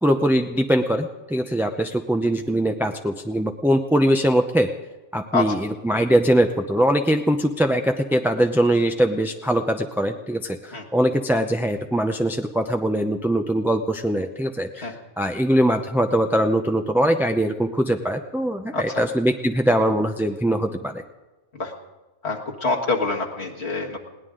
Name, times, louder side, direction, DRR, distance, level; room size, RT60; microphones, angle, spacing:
voice 1, 0.0-4.7 5.1-21.0, right 1 dB, 5° right, 5 dB, 0.5 m, -22 dB
voice 2, 18.7-19.0 21.5-21.7 22.2-24.0, left 3 dB, 65° left, 0 dB, 1.9 m, -26 dB
20.5 x 17.5 x 3.8 m, 1.1 s
omnidirectional pair, 1.2 m